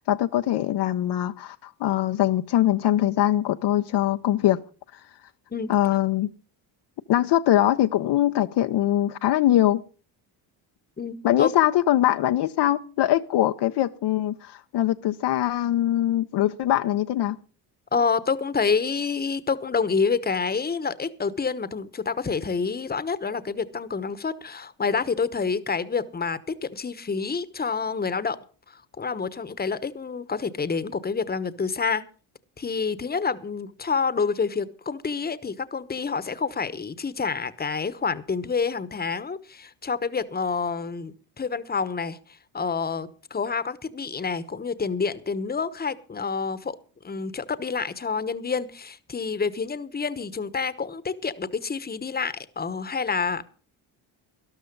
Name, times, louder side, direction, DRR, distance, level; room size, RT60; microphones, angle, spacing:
voice 1, 0.0-4.6 5.7-6.3 7.1-9.8 11.2-17.4, left 13 dB, 60° left, 0.7 m, -22 dB
voice 2, 11.0-11.5 17.9-28.4 28.7-32.0 32.6-46.8 47.0-53.6, left 5 dB, 20° left, 1.0 m, -28 dB
13.0 x 12.0 x 5.3 m
supercardioid pair, 80°, 46 cm